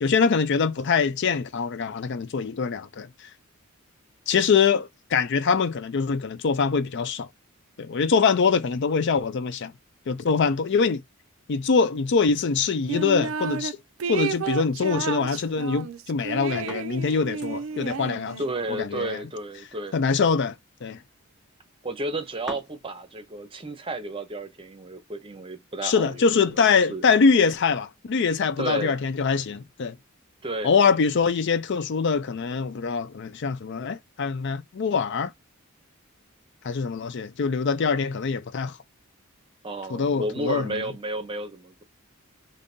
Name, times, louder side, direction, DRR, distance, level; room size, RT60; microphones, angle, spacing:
voice 1, 0.0-3.3 4.3-7.3 7.8-9.7 10.1-11.0 11.5-13.8 14.1-18.4 18.7-19.2 19.9-20.6 20.8-21.0 25.8-30.0 30.6-35.3 36.6-38.8 39.9-40.8, left 5 dB, 55° left, 0.4 m, -23 dB
sound 1, 12.9-13.7 14.0-18.7, right 6 dB, 65° right, 0.4 m, -32 dB
sound 2, 16.1-23.1, equal, 5° right, 2.0 m, -47 dB
voice 2, 18.4-20.0 21.8-26.3 26.5-27.0 28.6-29.0 30.4-31.0 39.6-41.8, right 2 dB, 25° right, 0.7 m, -32 dB
5.1 x 2.7 x 2.6 m
head